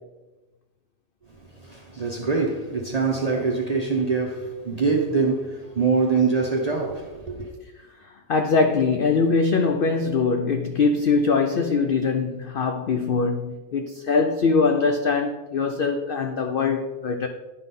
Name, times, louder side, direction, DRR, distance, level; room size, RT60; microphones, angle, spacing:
voice 1, 1.4-7.5, right 4 dB, 40° right, 0.6 m, -24 dB
voice 2, 7.8-17.3, left 4 dB, 70° left, 0.5 m, -22 dB
9.7 x 5.7 x 3.7 m
omnidirectional pair, 1.5 m